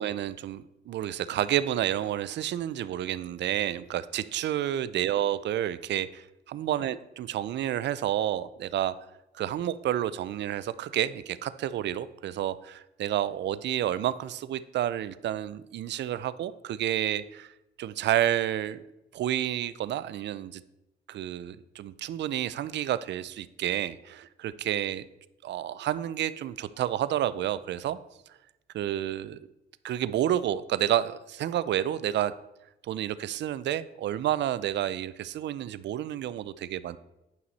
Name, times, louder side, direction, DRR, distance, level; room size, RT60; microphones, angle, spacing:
voice 1, 0.0-8.9 9.3-17.5 17.8-18.8 19.1-20.6 21.1-25.1 25.4-28.0 28.7-29.4 29.8-32.3 32.8-37.0, right 11 dB, 65° right, 15 dB, 0.5 m, -30 dB
9.3 x 5.7 x 4.1 m, 0.92 s
cardioid pair, 90°, 20 cm